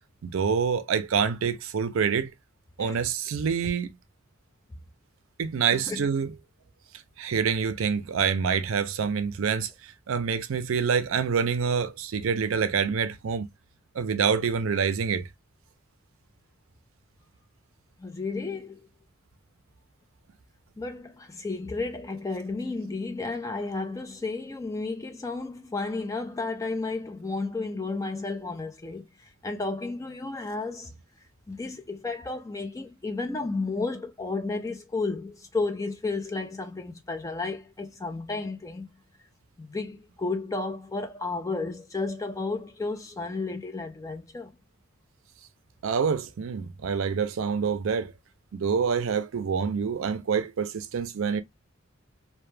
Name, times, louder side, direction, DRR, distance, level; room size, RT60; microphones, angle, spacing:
voice 1, 0.2-2.3 2.8-3.9 5.4-6.3 7.2-9.7 10.1-13.5 14.0-15.3 45.8-48.1 48.5-51.4, right 6 dB, 80° right, 0.4 m, -26 dB
voice 2, 5.7-6.1 18.0-18.9 20.8-30.9 31.5-38.9 39.6-44.5, left 3 dB, 15° left, 0.3 m, -32 dB
2.1 x 2.1 x 3.1 m
head